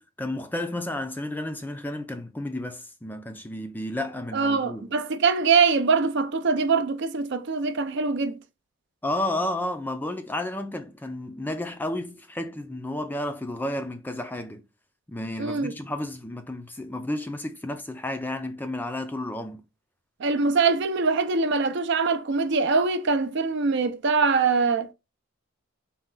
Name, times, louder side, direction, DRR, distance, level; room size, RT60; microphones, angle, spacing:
voice 1, 0.0-4.9 9.0-14.6 15.1-19.6, left 1 dB, 10° left, 0.4 m, -32 dB
voice 2, 4.3-8.4 15.4-15.7 20.2-24.9, right 4 dB, 55° right, 0.5 m, -23 dB
4.3 x 2.2 x 3.8 m
head